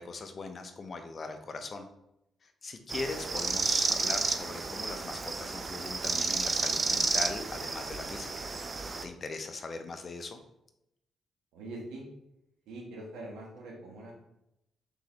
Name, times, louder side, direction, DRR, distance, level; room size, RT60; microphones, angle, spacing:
voice 1, 0.0-1.9 2.4-8.5 9.0-10.4, left 3 dB, 45° left, 7 dB, 0.6 m, -40 dB
sound 1, 2.9-9.0, right 3 dB, 40° right, 0.5 m, -31 dB
voice 2, 11.5-12.0 12.7-14.1, right 2 dB, 85° right, -2 dB, 1.2 m, -43 dB
3.8 x 3.7 x 3.0 m, 0.85 s
cardioid pair, 65°, 0 cm